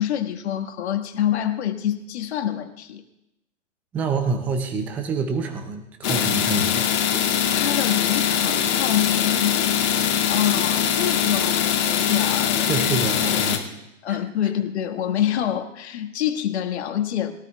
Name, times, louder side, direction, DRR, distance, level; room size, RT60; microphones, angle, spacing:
voice 1, 0.0-3.0 7.3-12.7 13.3-13.4 14.0-17.3, left 10 dB, 55° left, 7 dB, 1.6 m, -26 dB
voice 2, 3.9-6.9 12.6-13.7 14.1-14.2, right 4 dB, 5° right, 6 dB, 0.3 m, -27 dB
sound 1, 6.0-13.6, left 9 dB, 35° left, 2.2 m, -22 dB
21.5 x 13.0 x 2.3 m, 0.89 s
hypercardioid pair, 125°, 39 cm